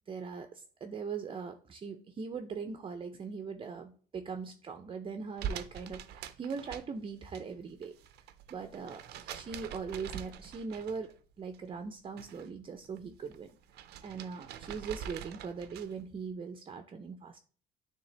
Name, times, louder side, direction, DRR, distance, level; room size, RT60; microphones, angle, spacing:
voice 1, 0.1-8.0 8.5-13.5 14.0-17.4, right 5 dB, 30° right, 7 dB, 0.6 m, -41 dB
sound 1, 5.4-7.4 7.7-11.2 11.5-12.5 12.8-16.1, right 8 dB, 75° right, 0.6 m, -44 dB
9.3 x 3.3 x 3.3 m, 0.42 s
cardioid pair, 110°, 17 cm